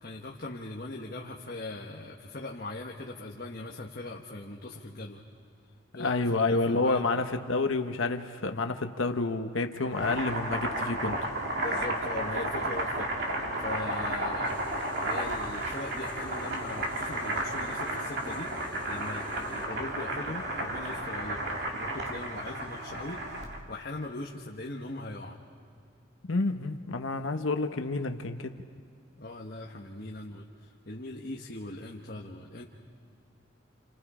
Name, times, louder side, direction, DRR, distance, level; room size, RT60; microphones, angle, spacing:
voice 1, 0.0-5.2 5.9-7.1 11.6-14.6 15.0-23.2 23.7-25.4 29.2-32.6, left 2 dB, 45° left, -1 dB, 1.4 m, -40 dB
voice 2, 6.0-11.3 26.3-28.5, left 3 dB, 75° left, 6 dB, 1.0 m, -29 dB
Boiling, 9.8-23.6, right 1 dB, 55° right, 2.7 m, -33 dB
sound 1, 14.4-19.7, equal, 10° left, 4.7 m, -49 dB
29.5 x 29.5 x 5.0 m, 2.4 s
head